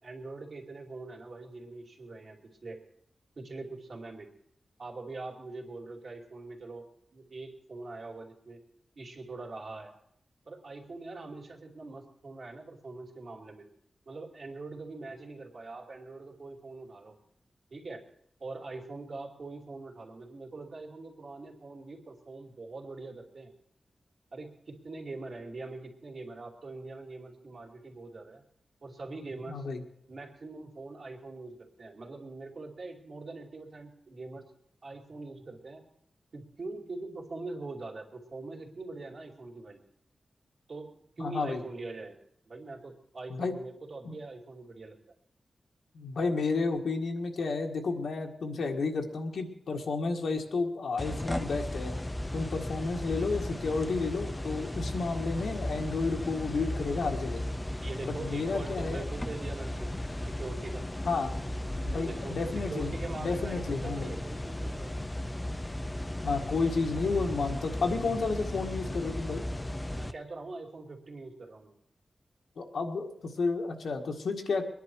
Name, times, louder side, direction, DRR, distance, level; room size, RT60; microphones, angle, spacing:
voice 1, 0.0-2.8 3.4-4.3 4.8-6.8 7.1-8.6 9.0-9.9 10.5-13.7 14.1-17.2 17.7-18.0 18.4-23.5 24.3-28.4 28.8-29.7 30.1-34.4 34.8-35.8 36.3-39.8 40.7-42.2 42.5-45.0 57.8-59.9 60.3-60.9 61.9-65.0 69.9-71.7, right 3 dB, 55° right, 0 dB, 2.7 m, -43 dB
voice 2, 29.5-29.8 41.2-41.6 43.3-43.6 44.0-44.2 45.9-51.9 52.3-57.4 58.0-59.0 61.0-61.3 61.8-64.1 66.2-69.4 72.6-74.7, left 4 dB, 85° left, 2 dB, 1.8 m, -31 dB
sound 1, 51.0-70.1, left 1 dB, 15° left, 0.5 m, -36 dB
22.0 x 10.5 x 4.7 m, 0.69 s
wide cardioid pair, 140°, 0 cm